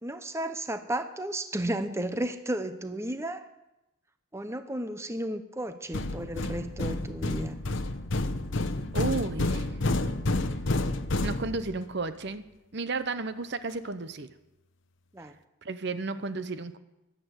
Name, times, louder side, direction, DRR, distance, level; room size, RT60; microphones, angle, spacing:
voice 1, 0.0-3.4 4.3-7.6 15.1-15.3, right 1 dB, 15° right, 10 dB, 0.7 m, -33 dB
sound 1, 5.9-11.9, left 2 dB, 60° left, 0.9 m, -30 dB
voice 2, 8.9-9.7 10.3-10.4 11.2-12.4 12.7-14.3 15.2-15.3 15.6-16.8, right 3 dB, 55° right, 12 dB, 0.8 m, -33 dB
15.5 x 11.5 x 8.0 m, 0.94 s
head